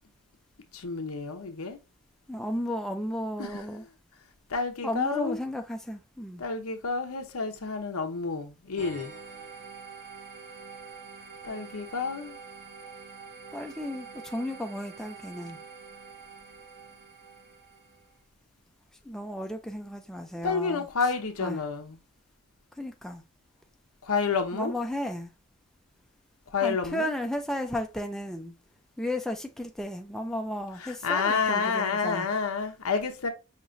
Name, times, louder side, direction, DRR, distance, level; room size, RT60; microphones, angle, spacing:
voice 1, 0.7-1.8 3.4-3.6 4.5-5.4 6.4-9.1 11.4-12.4 20.4-22.0 24.0-24.7 26.5-27.1 30.8-33.3, left 5 dB, 85° left, 0.9 m, -29 dB
voice 2, 2.3-3.8 4.8-6.4 13.5-15.6 19.0-20.9 21.4-21.6 22.8-23.2 24.5-25.3 26.6-28.5 29.0-32.3, left 1 dB, ahead, 0.4 m, -34 dB
sound 1, 8.8-18.1, right 5 dB, 45° right, 1.4 m, -46 dB
5.6 x 2.9 x 2.6 m
head